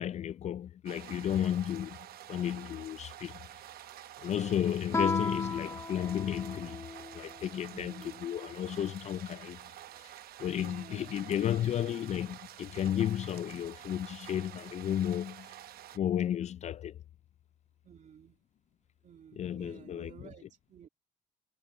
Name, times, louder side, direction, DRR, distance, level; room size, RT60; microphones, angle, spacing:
voice 1, 0.0-2.0 2.3-3.4 4.2-6.9 7.1-7.9 8.2-10.1 10.4-15.6 15.9-17.0 19.3-20.3, left 10 dB, 40° left, 0.4 m, -33 dB
sound 1, 0.9-16.0, right 12 dB, 65° right, 0.9 m, -49 dB
Guitar, 4.9-7.4, left 3 dB, 15° left, 0.8 m, -35 dB
voice 2, 7.7-8.2 10.6-11.2 17.8-18.3 19.0-20.9, right 9 dB, 45° right, 2.6 m, -52 dB
cardioid pair, 110°, 17 cm